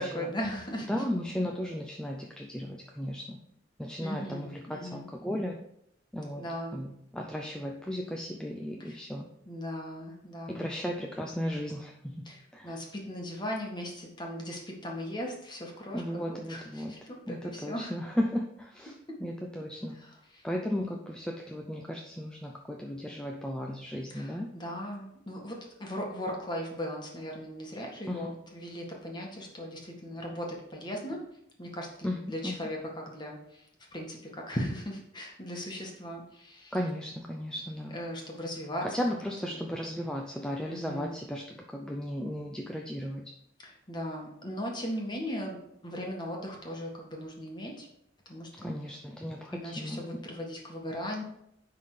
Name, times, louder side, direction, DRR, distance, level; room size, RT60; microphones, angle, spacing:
voice 1, 0.0-1.0 4.0-5.1 6.4-6.8 8.8-9.0 9.4-10.7 12.2-17.9 19.9-20.4 24.1-31.2 31.6-36.8 37.9-39.0 39.4-39.7 40.6-41.2 43.6-45.6 45.8-47.9 48.2-48.7 49.5-51.2, equal, 25° left, -1 dB, 1.7 m, -38 dB
voice 2, 0.9-3.4 3.8-5.6 6.1-6.5 6.7-9.3 10.5-12.8 15.9-16.9 17.3-18.9 19.2-20.0 20.4-24.5 28.1-28.4 32.0-32.2 32.4-32.5 36.7-38.0 38.8-43.2 48.6-50.0, equal, 5° left, 0 dB, 0.6 m, -35 dB
9.7 x 3.9 x 4.9 m, 0.75 s
head